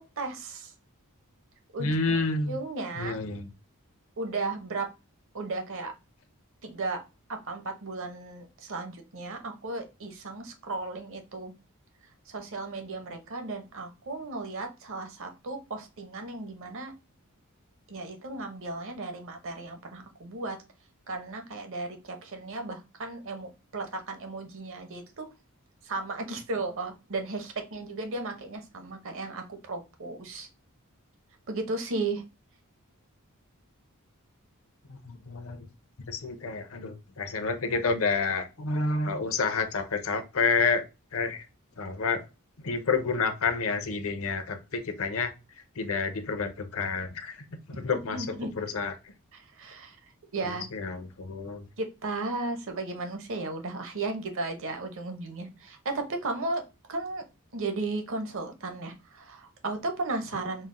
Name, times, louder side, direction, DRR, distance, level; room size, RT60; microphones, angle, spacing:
voice 1, 0.2-0.7 1.7-2.2 2.5-3.2 4.2-4.9 5.3-5.9 6.6-7.0 7.3-11.5 12.3-16.9 17.9-20.6 21.1-25.3 25.8-30.5 31.5-32.2 48.1-48.5 49.3-50.0 50.3-50.7 51.8-56.6 56.9-57.2 57.5-60.7, right 3 dB, 65° right, 0.9 m, -35 dB
voice 2, 1.8-2.6 2.9-3.5 34.9-35.7 36.1-40.8 41.1-41.5 41.8-42.2 42.6-45.3 45.8-47.4 47.7-48.3 48.6-48.9 50.4-51.6, left 4 dB, 70° left, 0.8 m, -29 dB
4.2 x 2.1 x 3.7 m
head